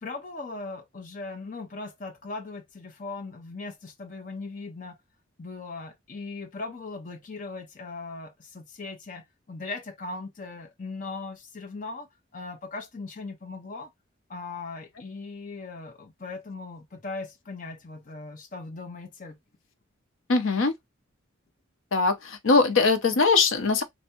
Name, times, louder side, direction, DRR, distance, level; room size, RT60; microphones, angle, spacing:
voice 1, 0.0-5.0 5.4-12.1 12.3-13.9 14.3-19.4, left 3 dB, 40° left, 0.7 m, -39 dB
voice 2, 20.3-20.7 21.9-23.8, left 4 dB, 85° left, 0.7 m, -21 dB
3.4 x 2.1 x 4.3 m
head